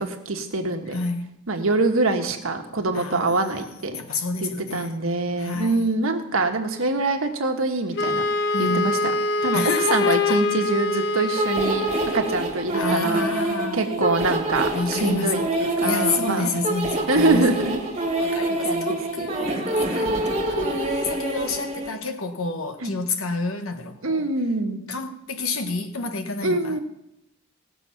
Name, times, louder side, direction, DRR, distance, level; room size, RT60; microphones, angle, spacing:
voice 1, 0.0-1.0 1.5-4.0 4.4-8.2 8.6-9.0 9.4-9.6 9.9-11.9 12.1-13.2 13.7-16.5 17.1-17.8 18.2-19.5 22.8-22.9 24.0-24.8 26.4-26.8, right 2 dB, 80° right, 4 dB, 1.4 m, -24 dB
voice 2, 0.9-1.4 2.9-3.7 3.9-5.0 5.4-5.9 8.5-8.8 9.5-10.4 12.7-13.9 14.7-17.6 18.2-24.3 24.9-26.8, left 3 dB, 90° left, 6 dB, 1.3 m, -29 dB
Wind instrument woodwind instrument, 8.0-12.4, left 3 dB, 55° left, 0.4 m, -24 dB
sound 1, 11.4-21.9, right 1 dB, 30° right, 1.9 m, -26 dB
17.0 x 6.9 x 5.8 m, 0.86 s
head